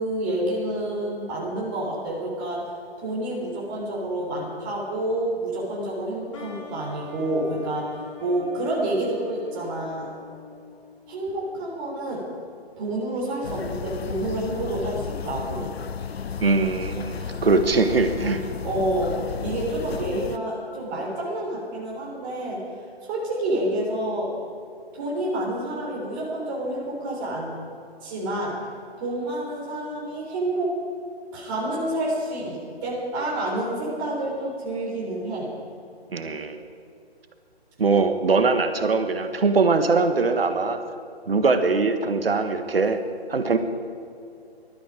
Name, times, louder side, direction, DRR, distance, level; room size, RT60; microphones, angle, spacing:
voice 1, 0.0-2.7 3.0-10.1 11.1-12.2 12.8-15.7 17.2-17.4 18.6-22.6 23.0-24.3 24.9-27.6 28.0-28.5 29.0-30.7 31.3-35.5, right 1 dB, 20° right, -4 dB, 3.5 m, -28 dB
sound 1, 6.3-11.8, left 4 dB, 30° left, 2.5 m, -43 dB
sound 2, 13.4-20.4, left 6 dB, 75° left, 0.7 m, -33 dB
voice 2, 16.4-18.4 36.1-36.6 37.8-40.8 41.3-43.0 43.3-43.6, right 4 dB, 65° right, 8 dB, 1.6 m, -21 dB
20.5 x 13.0 x 5.1 m, 2.5 s
figure-of-eight pair, 150°, 32 cm